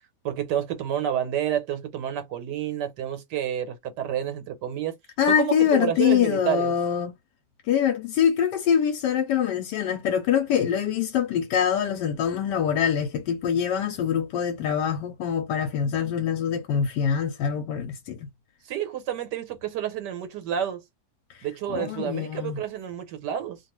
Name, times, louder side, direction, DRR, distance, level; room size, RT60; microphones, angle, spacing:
voice 1, 0.2-4.9 5.3-6.7 18.6-20.8 21.4-23.6, right 10 dB, 80° right, 1.3 m, -29 dB
voice 2, 5.2-7.1 7.7-18.3 21.3-22.6, left 8 dB, 85° left, 1.2 m, -24 dB
2.8 x 2.3 x 2.9 m
omnidirectional pair, 1.8 m